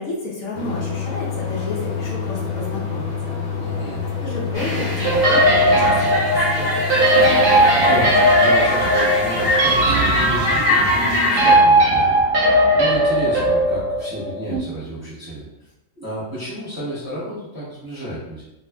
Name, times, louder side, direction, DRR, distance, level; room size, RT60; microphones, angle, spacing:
voice 1, 0.0-3.3 3.9-4.0 4.2-6.9, left 2 dB, 75° left, -3 dB, 1.1 m, -30 dB
sound 1, 0.5-10.0, left 6 dB, 60° left, 0.6 m, -29 dB
voice 2, 3.6-4.0 7.5-15.4 15.9-18.4, equal, 15° right, -11 dB, 1.1 m, -31 dB
sound 2, 4.5-11.6, left 1 dB, 45° left, 1.4 m, -23 dB
sound 3, 5.0-14.6, right 1 dB, 65° right, 1.0 m, -17 dB
2.8 x 2.4 x 2.3 m, 0.91 s
omnidirectional pair, 1.5 m